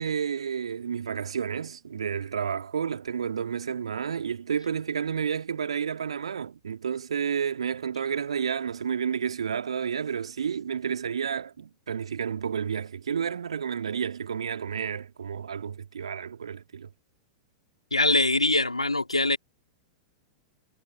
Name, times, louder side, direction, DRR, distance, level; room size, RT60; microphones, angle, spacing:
voice 1, 0.0-16.9, right 7 dB, 70° right, 2.4 m, -31 dB
voice 2, 17.9-19.4, left 2 dB, 85° left, 3.0 m, -23 dB
figure-of-eight pair, 95°, 3 cm